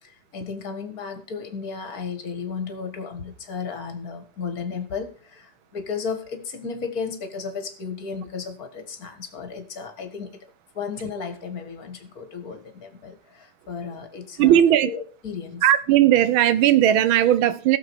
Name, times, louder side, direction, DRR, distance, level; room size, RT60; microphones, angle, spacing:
voice 1, 0.0-10.5 10.7-14.5 14.9-15.6, left 5 dB, 45° left, 1.9 m, -34 dB
voice 2, 14.4-14.9 15.6-17.8, right 11 dB, 75° right, 1.5 m, -17 dB
16.0 x 7.1 x 4.6 m
omnidirectional pair, 2.4 m